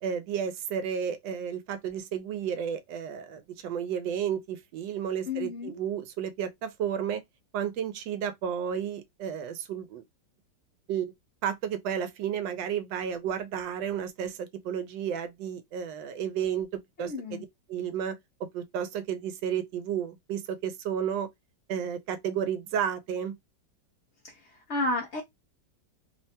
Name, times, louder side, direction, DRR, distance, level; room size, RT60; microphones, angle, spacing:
voice 1, 0.0-7.2 7.5-10.0 10.9-11.1 11.4-21.3 21.7-23.4, right 8 dB, 85° right, 1.3 m, -32 dB
voice 2, 5.3-5.8 17.0-17.4 24.3-25.2, left 2 dB, 75° left, 0.6 m, -32 dB
3.3 x 2.2 x 2.6 m
omnidirectional pair, 1.9 m